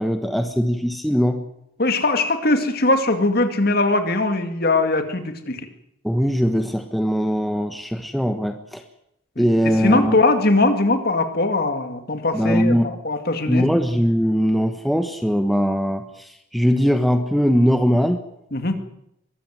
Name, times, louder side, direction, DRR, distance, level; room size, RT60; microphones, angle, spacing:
voice 1, 0.0-1.4 6.0-8.8 9.4-10.2 12.3-12.9 13.5-18.2, equal, ahead, 6 dB, 1.2 m, -20 dB
voice 2, 1.8-5.7 9.4-13.7 18.5-18.8, left 2 dB, 45° left, 7 dB, 2.3 m, -21 dB
22.5 x 14.0 x 9.6 m, 0.79 s
head